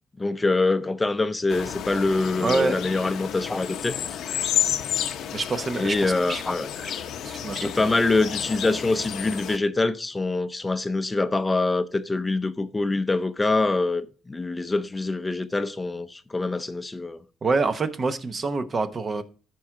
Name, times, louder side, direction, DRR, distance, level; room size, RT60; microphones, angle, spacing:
voice 1, 0.2-4.0 5.7-7.0 7.6-17.2, left 3 dB, 20° left, 0.6 m, -25 dB
sound 1, 1.5-9.6, left 9 dB, 80° left, 0.7 m, -31 dB
voice 2, 2.4-2.8 5.3-6.4 7.2-7.7 17.4-19.2, right 3 dB, 40° right, 0.9 m, -26 dB
13.5 x 4.7 x 3.6 m
cardioid pair, 90°, 0 cm